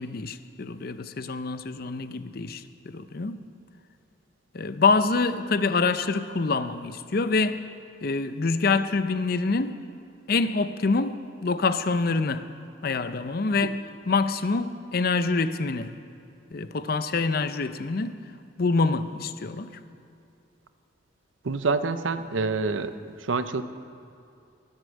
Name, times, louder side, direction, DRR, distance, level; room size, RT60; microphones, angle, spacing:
voice 1, 0.0-3.4 4.5-7.7 8.0-9.8 10.3-12.5 12.8-16.0 16.5-18.2 18.6-19.8, left 4 dB, 50° left, 11 dB, 0.6 m, -26 dB
voice 2, 21.4-22.9 23.2-23.6, right 4 dB, 80° right, 11 dB, 0.7 m, -26 dB
20.0 x 8.2 x 6.4 m, 2.6 s
head